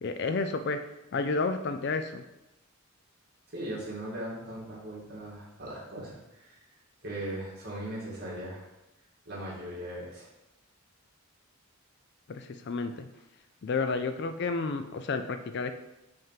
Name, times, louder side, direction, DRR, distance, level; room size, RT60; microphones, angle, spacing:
voice 1, 0.0-0.8 1.1-2.2 12.3-13.1 13.6-15.7, left 4 dB, 50° left, 8 dB, 0.4 m, -31 dB
voice 2, 3.5-6.6 7.0-8.7 9.3-10.3, right 1 dB, 45° right, -5 dB, 2.2 m, -39 dB
5.4 x 3.6 x 5.7 m, 0.94 s
head